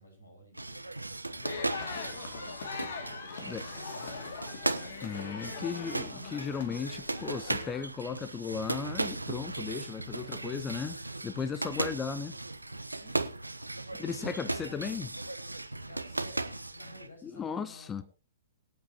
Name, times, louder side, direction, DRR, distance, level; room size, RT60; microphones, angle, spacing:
voice 1, 0.0-1.8 2.9-4.9 10.1-10.4 11.4-11.7 13.0-13.3 13.8-15.1 15.9-18.0, left 1 dB, 80° left, 6.0 m, -54 dB
sound 1, 0.5-17.1, right 2 dB, 85° right, 1.0 m, -37 dB
sound 2, 1.4-7.8, left 4 dB, 60° left, 2.5 m, -41 dB
voice 2, 5.0-12.4 14.0-15.1 17.2-18.0, left 6 dB, 15° left, 0.7 m, -36 dB
23.0 x 8.5 x 3.0 m
figure-of-eight pair, 110°, 0 cm